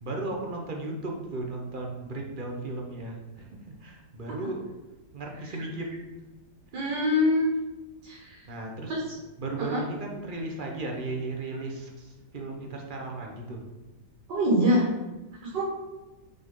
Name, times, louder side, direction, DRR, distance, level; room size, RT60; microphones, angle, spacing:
voice 1, 0.0-4.6 5.1-6.0 8.5-8.9 9.4-13.6, right 2 dB, 35° right, 1 dB, 0.9 m, -35 dB
voice 2, 6.7-7.5 8.0-8.4 8.9-9.0 9.7-9.8 14.3-14.9 15.5-15.6, left 1 dB, 90° right, -4 dB, 2.0 m, -24 dB
5.7 x 5.6 x 3.8 m, 1.1 s
omnidirectional pair, 1.8 m